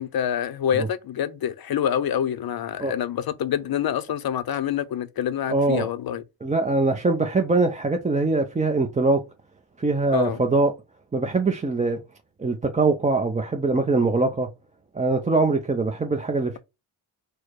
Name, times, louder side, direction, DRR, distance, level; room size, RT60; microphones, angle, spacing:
voice 1, 0.0-6.2 10.1-10.4, left 9 dB, 50° left, 0.6 m, -26 dB
voice 2, 5.5-5.9 6.4-9.2 9.8-10.7 11.1-12.0 12.4-14.5 14.9-16.6, right 3 dB, 15° right, 0.5 m, -22 dB
4.6 x 2.2 x 4.5 m
cardioid pair, 85°, 47 cm